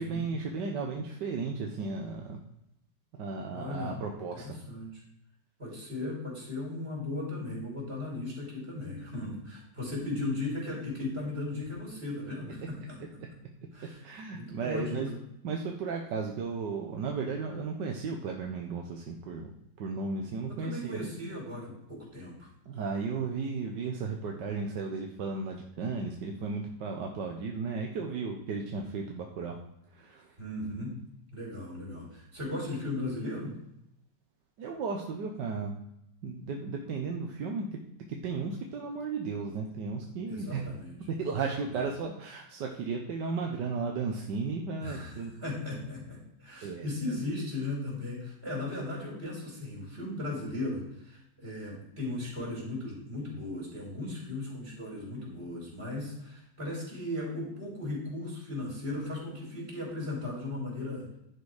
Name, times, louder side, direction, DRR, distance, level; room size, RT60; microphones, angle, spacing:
voice 1, 0.0-2.4 3.2-4.6 14.0-15.1 15.4-19.5 19.8-21.0 22.7-29.6 29.9-30.4 34.6-35.8 36.2-37.8 38.1-40.7 41.2-45.3 46.6-46.9, right 4 dB, 70° right, 2 dB, 1.5 m, -34 dB
voice 2, 3.5-3.9 4.3-5.0 5.6-13.2 13.7-14.0 14.3-15.0 20.5-22.5 30.4-31.0 31.3-33.6 40.2-41.0 44.8-61.1, left 2 dB, 30° right, -3 dB, 5.0 m, -37 dB
11.0 x 6.2 x 4.9 m, 0.81 s
omnidirectional pair, 2.0 m